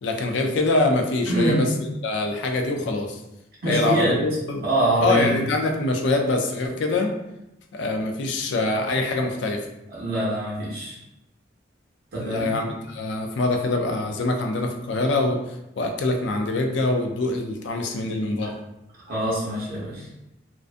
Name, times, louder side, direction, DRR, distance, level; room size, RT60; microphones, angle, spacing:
voice 1, 0.0-1.7 2.0-3.2 3.7-4.7 5.0-7.1 7.7-9.7 12.2-18.6, left 2 dB, 65° left, 3 dB, 0.4 m, -24 dB
voice 2, 1.3-1.6 3.6-4.1 4.6-5.3 9.9-11.0 12.1-12.5 18.4-18.5 19.1-20.1, right 1 dB, 50° right, -7 dB, 0.6 m, -24 dB
2.5 x 2.2 x 2.4 m, 0.90 s
head